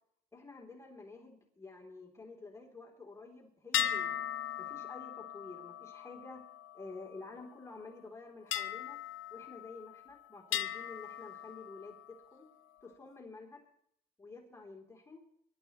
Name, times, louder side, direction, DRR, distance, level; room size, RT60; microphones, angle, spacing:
voice 1, 0.3-4.1 4.6-6.4 6.7-9.0 9.3-12.5 12.8-13.6 14.2-15.2, left 3 dB, 15° left, -1 dB, 3.1 m, -50 dB
sound 1, 3.7-7.4 8.5-10.1 10.5-12.2, left 10 dB, 80° left, 0.8 m, -38 dB
24.0 x 12.0 x 3.1 m, 0.69 s
cardioid pair, 90°, 20 cm